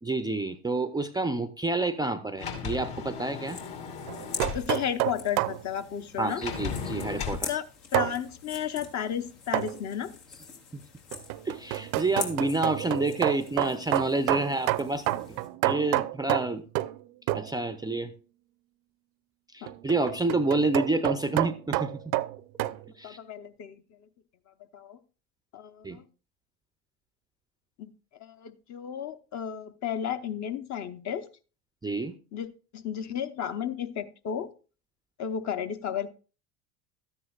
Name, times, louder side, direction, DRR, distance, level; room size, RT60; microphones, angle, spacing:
voice 1, 0.0-3.6 6.2-7.5 11.5-15.4 15.6-16.6 17.3-18.1 19.5-21.9 23.0-23.2 25.8-26.0 31.8-32.1, right 2 dB, 10° right, 10 dB, 0.5 m, -29 dB
Sliding door, 2.4-4.7 6.4-7.4, left 6 dB, 55° left, 2.6 m, -35 dB
sound 1, 3.5-15.5, left 5 dB, 75° left, 2.6 m, -44 dB
sound 2, 4.1-5.6 7.9-8.2 9.5-9.8 11.1-17.0 17.3-17.5 19.7-22.8, right 17 dB, 60° right, 0.6 m, -29 dB
voice 2, 4.5-6.4 7.5-7.6 7.9-10.1 19.6-19.7 23.0-23.8 24.7-25.0 25.5-26.0 27.8-27.9 28.2-31.3 32.3-32.5 32.7-34.5 35.2-36.1, left 9 dB, 40° left, 10 dB, 0.9 m, -33 dB
12.5 x 9.8 x 2.4 m, 0.36 s
hypercardioid pair, 80°, 43 cm